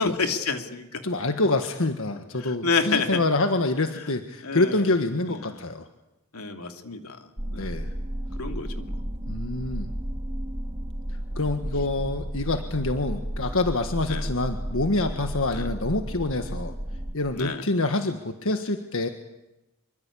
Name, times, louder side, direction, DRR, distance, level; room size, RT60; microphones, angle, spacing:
voice 1, 0.0-1.0 2.4-3.2 4.4-4.9 5.3-5.6 6.3-7.2 7.5-7.8 8.4-8.9 14.1-14.3 15.5-15.7 17.3-17.6, left 4 dB, 90° left, 5 dB, 2.8 m, -29 dB
voice 2, 1.0-5.9 7.6-7.9 9.3-9.9 11.4-16.7 17.1-19.1, left 2 dB, 70° left, 6 dB, 1.7 m, -26 dB
sound 1, 7.4-17.1, equal, 30° right, 2.3 m, -33 dB
26.0 x 24.0 x 8.6 m, 0.97 s
head